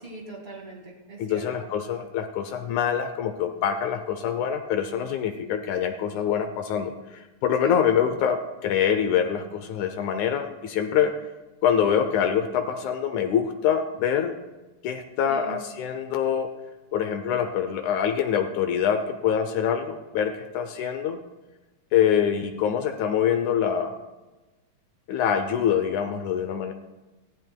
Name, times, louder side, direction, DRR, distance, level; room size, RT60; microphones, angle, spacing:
voice 1, 0.0-1.7 7.6-7.8 15.2-15.6, right 2 dB, 20° right, -2 dB, 1.3 m, -40 dB
voice 2, 1.2-11.1 11.6-14.3 14.8-16.5 16.9-21.2 21.9-24.0 25.1-26.7, left 8 dB, 80° left, 7 dB, 1.7 m, -25 dB
20.5 x 15.5 x 2.2 m, 1.1 s
omnidirectional pair, 4.1 m